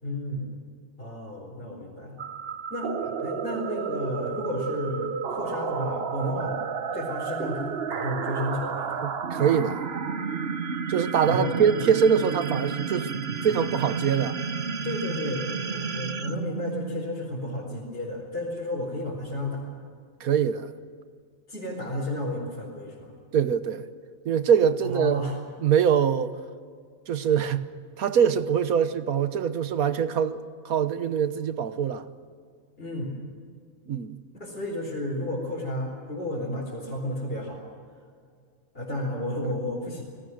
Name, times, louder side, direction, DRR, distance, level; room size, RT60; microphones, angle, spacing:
voice 1, 0.0-0.6 1.0-2.3 2.7-2.9 3.2-6.6 6.9-9.2 11.3-11.5 14.8-19.7 21.5-23.1 24.8-25.4 32.8-33.1 34.3-37.6 38.7-40.0, left 1 dB, 40° left, 4.7 m, -32 dB
sound 1, 2.2-17.3, right 5 dB, 50° right, 1.2 m, -31 dB
voice 2, 9.0-9.8 10.9-13.1 13.4-14.4 20.2-20.7 23.3-23.8 24.2-25.2 25.6-26.3 27.1-27.7 28.0-32.1 33.9-34.2 39.4-39.5, right 7 dB, 90° right, 1.5 m, -23 dB
30.0 x 19.5 x 6.4 m
omnidirectional pair, 1.5 m